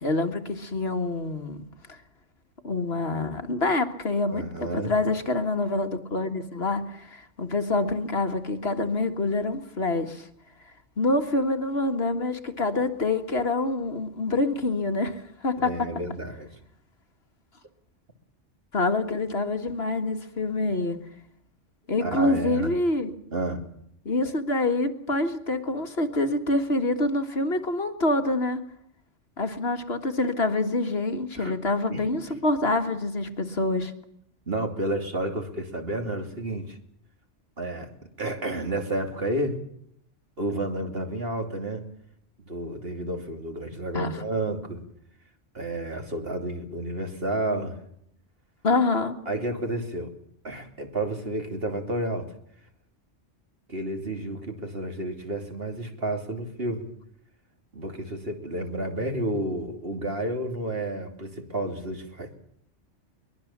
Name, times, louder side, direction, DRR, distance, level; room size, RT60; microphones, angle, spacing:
voice 1, 0.0-1.6 1.9-2.0 2.6-10.2 11.0-15.9 18.7-21.0 21.9-23.1 24.1-28.6 29.4-33.9 43.9-44.1 48.6-49.2, left 2 dB, 55° left, 7 dB, 1.9 m, -26 dB
voice 2, 4.3-4.9 15.6-16.5 22.0-22.7 23.3-23.6 31.4-31.5 31.9-32.0 34.5-36.8 37.6-37.9 38.2-39.6 40.4-41.9 42.4-44.8 45.5-47.8 49.3-50.1 50.4-52.3 53.7-56.9 57.7-62.4, right 1 dB, 50° right, 5 dB, 3.2 m, -31 dB
23.0 x 21.5 x 7.3 m, 0.71 s
omnidirectional pair, 1.3 m